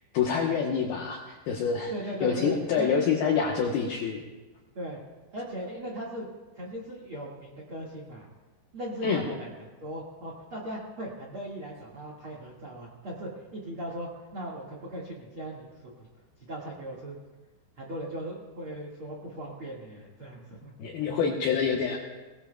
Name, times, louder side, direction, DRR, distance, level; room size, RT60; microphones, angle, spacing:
voice 1, 0.1-1.9 2.2-4.3 9.0-9.2 20.8-22.0, left 6 dB, 75° left, -1 dB, 2.3 m, -26 dB
voice 2, 1.9-2.9 4.7-5.0 5.3-6.3 6.5-8.3 8.7-16.1 16.4-17.2 17.8-20.7, right 1 dB, 75° right, -1 dB, 1.2 m, -38 dB
21.5 x 20.0 x 2.3 m, 1.2 s
omnidirectional pair, 5.8 m